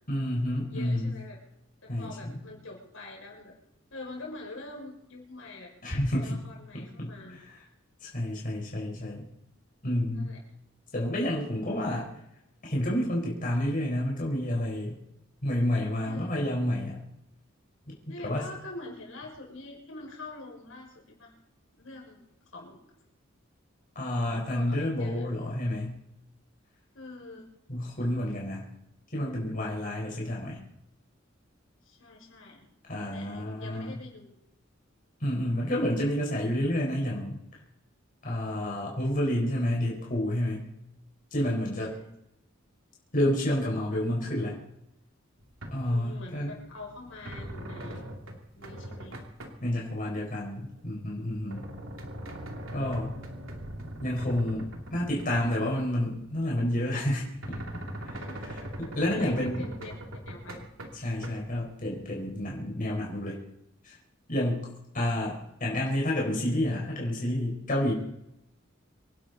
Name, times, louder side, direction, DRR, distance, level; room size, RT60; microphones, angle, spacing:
voice 1, 0.1-1.1 1.9-2.4 5.8-6.4 6.7-7.4 8.0-9.3 9.8-10.3 10.9-12.1 12.6-15.0 15.4-17.0 18.2-18.4 23.9-26.0 27.7-28.6 29.1-30.6 32.9-34.0 35.2-37.4 38.2-40.7 41.3-41.9 43.1-44.5 45.7-46.5 49.6-51.6 52.7-53.2 54.0-57.6 58.0-58.1 58.8-59.6 61.0-63.4 63.8-64.0 64.3-64.7 64.9-67.9, left 1 dB, 45° left, -3 dB, 4.7 m, -29 dB
voice 2, 0.7-1.4 1.8-3.5 3.9-5.7 6.2-7.4 10.1-10.4 16.0-16.3 18.1-21.3 21.7-22.2 22.5-22.8 24.2-25.3 26.9-27.5 31.8-32.6 33.0-34.4 41.4-42.1 45.7-48.0 48.6-49.2 58.2-58.4 59.1-60.7, left 2 dB, 85° left, -1 dB, 5.9 m, -45 dB
sound 1, 45.4-46.0 46.4-49.6 50.3-55.9 56.1-56.2 56.9-61.6 62.2-62.3, equal, 85° right, 2.7 m, -41 dB
26.5 x 11.5 x 4.1 m, 0.83 s
head